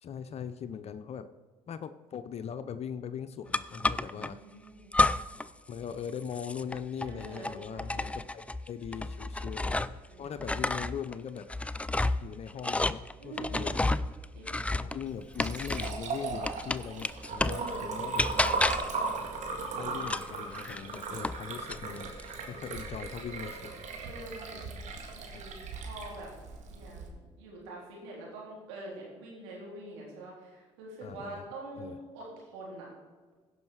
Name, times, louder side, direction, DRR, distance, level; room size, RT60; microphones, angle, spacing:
voice 1, 0.0-1.3 1.7-4.4 5.7-8.4 8.7-11.5 12.2-14.0 14.8-18.6 19.7-22.1 22.5-23.9 24.5-24.7 25.3-25.4 31.0-31.4 31.8-32.0, left 8 dB, 50° left, 11 dB, 0.6 m, -40 dB
sound 1, 3.5-4.3 4.9-5.5 5.8-10.1 10.4-16.1 16.5-17.7 18.2-19.0 20.0-21.4 21.7-22.3, left 2 dB, 10° left, 0.4 m, -31 dB
voice 2, 4.0-4.9 7.0-8.1 10.1-10.4 13.2-13.7 14.3-14.7 17.4-17.9 20.7-21.2 22.5-22.7 24.0-24.8 25.1-25.5 25.8-26.3 26.7-32.9, right 2 dB, 85° right, -4 dB, 3.8 m, -45 dB
Liquid, 15.1-27.1, right 4 dB, 60° right, 1.9 m, -37 dB
16.0 x 5.7 x 4.7 m, 1.5 s
hypercardioid pair, 65°, 14 cm